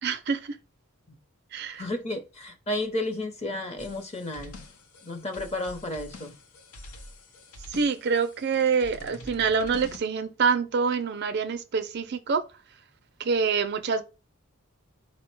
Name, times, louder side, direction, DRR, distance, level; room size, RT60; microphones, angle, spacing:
voice 1, 0.0-0.6 1.5-1.8 7.7-12.4 13.2-14.0, right 5 dB, 50° right, 0.4 m, -26 dB
voice 2, 1.7-4.6 5.0-6.3, left 1 dB, 30° left, 0.7 m, -32 dB
sound 1, 3.8-10.0, left 2 dB, 80° left, 0.7 m, -46 dB
4.7 x 2.1 x 4.4 m
head